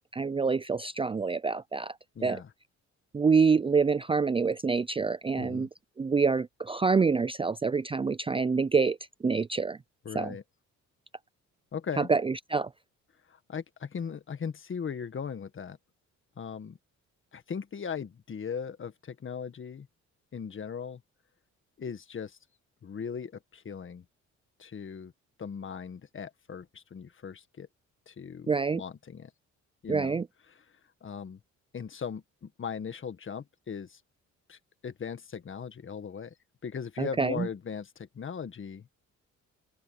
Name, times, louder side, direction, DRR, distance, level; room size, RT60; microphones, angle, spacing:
voice 1, 0.1-1.9 2.2-2.4 3.1-5.7 6.0-9.0 9.2-9.8 10.1-10.3 12.0-12.7 28.5-28.8 29.9-30.2 37.0-37.5, right 5 dB, 20° right, 0.4 m, -26 dB
voice 2, 2.2-2.5 5.4-5.7 10.0-10.4 11.7-12.1 13.3-15.8 16.4-16.8 17.3-19.9 20.3-21.0 21.8-22.4 22.8-24.0 24.6-25.1 25.4-27.7 28.1-29.3 29.8-30.2 30.5-30.7 31.0-31.4 31.7-34.0 34.5-36.3 36.6-38.9, left 6 dB, 40° left, 1.7 m, -38 dB
open air
cardioid pair, 90°, 30 cm